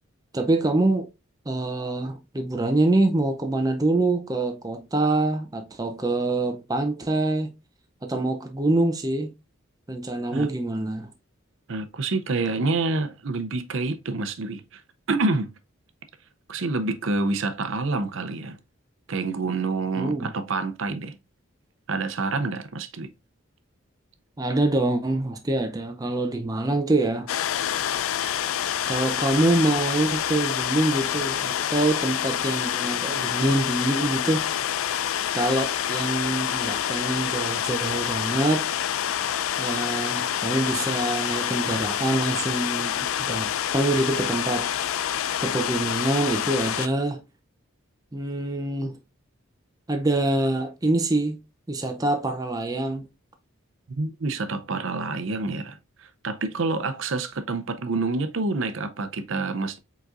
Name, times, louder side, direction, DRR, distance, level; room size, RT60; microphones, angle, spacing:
voice 1, 0.3-1.1 1.5-7.5 8.0-9.3 9.9-11.1 20.0-20.3 24.4-27.3 28.9-34.5 35.3-38.7 39.6-44.7 45.4-47.2 48.1-49.0 49.9-51.4 51.7-53.1, right 2 dB, 15° right, 0.5 m, -25 dB
voice 2, 11.7-14.8 15.1-15.5 16.5-18.6 19.1-21.2 21.9-23.1 53.9-59.8, right 3 dB, 65° right, 0.6 m, -27 dB
sound 1, 27.3-46.9, left 10 dB, 80° left, 0.4 m, -27 dB
4.9 x 4.0 x 2.5 m
head